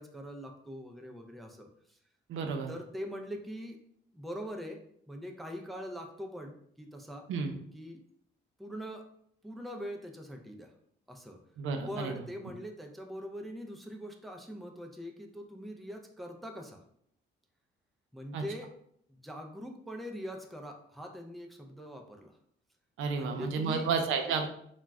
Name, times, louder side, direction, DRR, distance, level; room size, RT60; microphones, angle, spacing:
voice 1, 0.0-2.0 2.7-3.8 4.1-4.8 5.1-7.3 7.7-8.0 8.6-9.0 9.4-10.7 11.1-11.4 11.9-16.8 18.1-18.7 19.1-22.4 23.1-23.9, equal, ahead, 3 dB, 0.4 m, -42 dB
voice 2, 2.3-2.7 7.3-7.5 11.6-12.2 18.3-18.4 23.0-24.5, right 5 dB, 85° right, 5 dB, 0.5 m, -31 dB
2.3 x 2.0 x 3.4 m, 0.67 s
cardioid pair, 90°, 20 cm